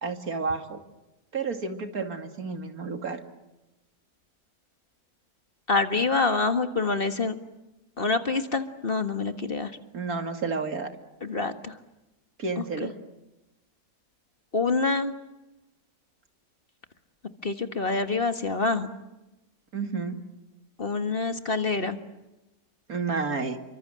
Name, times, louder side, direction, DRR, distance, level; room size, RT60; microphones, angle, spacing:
voice 1, 0.0-0.8 1.3-3.2 9.9-10.9 12.4-12.9 19.7-20.2 22.9-23.6, right 4 dB, 75° right, 6 dB, 2.9 m, -30 dB
voice 2, 5.7-7.3 8.0-9.7 11.2-11.7 12.6-12.9 14.5-15.1 17.4-18.9 20.8-22.0, left 3 dB, 40° left, 8 dB, 1.8 m, -26 dB
29.0 x 24.5 x 7.6 m, 0.99 s
omnidirectional pair, 1.6 m